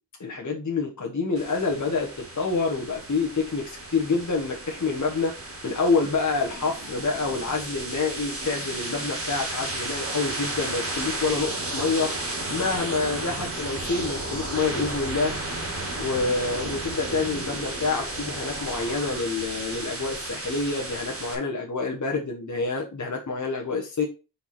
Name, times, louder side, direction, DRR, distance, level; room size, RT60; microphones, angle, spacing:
voice 1, 0.2-5.4 5.6-12.1 12.5-15.3 16.0-24.0, left 4 dB, 40° left, -1 dB, 1.4 m, -27 dB
sound 1, 1.4-21.4, right 2 dB, 30° right, 2.3 m, -33 dB
5.1 x 4.9 x 4.3 m, 0.31 s
wide cardioid pair, 110°, 43 cm